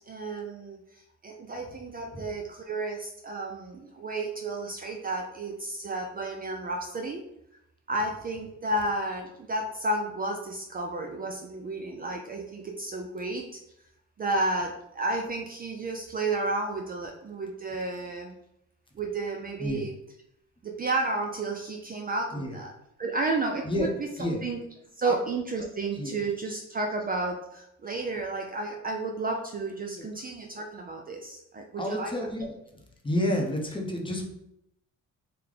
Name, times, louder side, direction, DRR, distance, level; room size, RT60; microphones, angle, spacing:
voice 1, 0.1-7.2 7.9-13.4 14.2-18.4 19.0-19.9 20.6-22.7 23.0-23.9 24.4-24.6 24.9-32.1, right 2 dB, 30° right, 2 dB, 0.4 m, -32 dB
voice 2, 31.8-32.5 33.0-34.2, left 1 dB, 15° left, 1 dB, 0.7 m, -30 dB
3.2 x 2.1 x 3.8 m, 0.80 s
cardioid pair, 90°, 30 cm